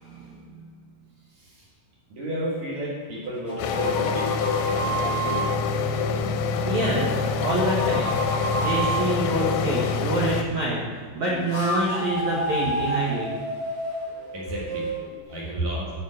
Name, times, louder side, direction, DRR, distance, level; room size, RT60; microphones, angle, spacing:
voice 1, 0.0-0.7 6.6-8.1 8.5-13.3, right 2 dB, 80° right, -5 dB, 1.6 m, -27 dB
voice 2, 1.3-1.6 2.1-4.3 4.7-5.5 14.3-14.9 15.3-15.9, right 1 dB, 65° right, -4 dB, 1.9 m, -33 dB
sound 1, 3.2-5.5 7.0-9.1 11.2-15.2, right 2 dB, 35° left, 1.3 m, -30 dB
sound 2, 3.6-10.4, left 5 dB, 85° left, 3.3 m, -25 dB
11.0 x 5.2 x 7.6 m, 1.4 s
omnidirectional pair, 5.8 m